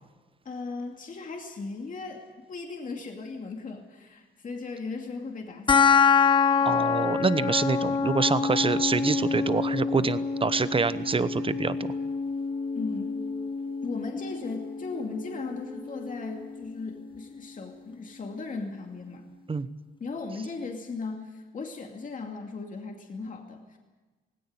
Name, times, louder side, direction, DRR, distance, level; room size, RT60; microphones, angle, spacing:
voice 1, 0.4-5.9 6.6-6.8 12.7-13.1 13.8-19.2 20.0-23.8, left 4 dB, 40° left, 2 dB, 2.5 m, -37 dB
sound 1, 5.7-16.7, left 5 dB, 25° left, 0.9 m, -26 dB
voice 2, 6.6-11.9 19.5-19.7, right 4 dB, 25° right, 14 dB, 1.0 m, -26 dB
Wind instrument woodwind instrument, 8.0-16.5, right 1 dB, 65° right, 5.4 m, -47 dB
17.5 x 17.0 x 9.6 m, 1.3 s
cardioid pair, 90°, 20 cm